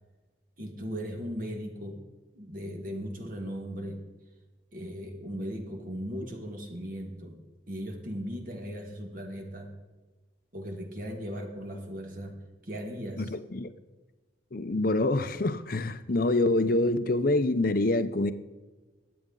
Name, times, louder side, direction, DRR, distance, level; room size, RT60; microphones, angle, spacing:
voice 1, 0.6-2.0 2.3-4.0 4.7-7.4 7.7-9.7 10.5-12.4 12.6-13.3, equal, 45° right, 1.7 m, -37 dB
voice 2, 13.2-13.7 14.5-18.3, left 2 dB, 50° left, 0.7 m, -26 dB
22.0 x 8.6 x 3.9 m
head